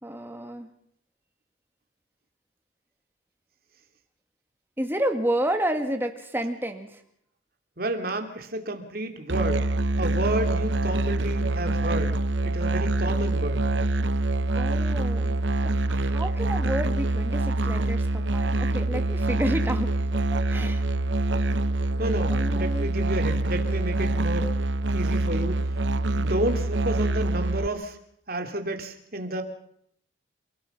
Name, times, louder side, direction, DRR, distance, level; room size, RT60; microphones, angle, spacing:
voice 1, 0.0-0.7 4.8-6.9 14.6-15.4 15.9-19.9 20.5-20.8 22.3-22.9, right 1 dB, 10° right, 5 dB, 2.1 m, -30 dB
voice 2, 7.8-9.6 10.0-12.1 12.4-13.6 22.0-24.5 24.9-25.6 26.2-28.0 28.3-29.4, right 1 dB, 50° right, 5 dB, 2.7 m, -30 dB
Musical instrument, 9.3-27.7, right 2 dB, 65° right, 0.8 m, -25 dB
30.0 x 17.0 x 5.5 m, 0.70 s
head